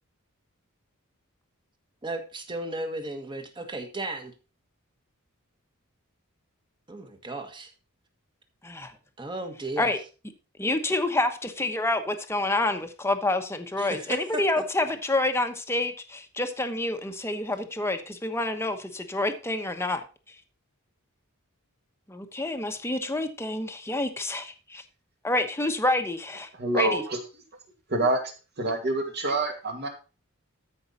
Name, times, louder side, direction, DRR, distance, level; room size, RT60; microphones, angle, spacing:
voice 1, 2.0-4.3 6.9-7.7 9.2-9.9 13.8-14.4, right 2 dB, 20° right, 6 dB, 1.5 m, -35 dB
voice 2, 10.6-20.0 22.1-24.8 25.2-26.5 26.7-27.0, left 2 dB, 10° left, 6 dB, 1.0 m, -28 dB
voice 3, 26.5-27.2 27.9-29.9, right 2 dB, 50° right, 3 dB, 2.4 m, -27 dB
13.5 x 5.4 x 4.1 m, 0.33 s
head